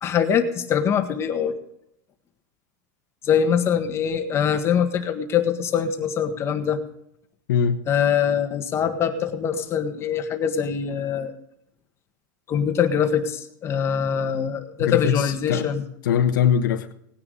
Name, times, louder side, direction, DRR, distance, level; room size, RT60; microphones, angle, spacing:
voice 1, 0.0-1.6 3.2-6.8 7.9-11.3 12.5-15.8, left 8 dB, 25° left, 1.6 m, -23 dB
voice 2, 7.5-7.8 14.8-15.7 16.0-16.9, left 8 dB, 80° left, 1.3 m, -21 dB
18.5 x 9.9 x 4.0 m
supercardioid pair, 145°, 10 cm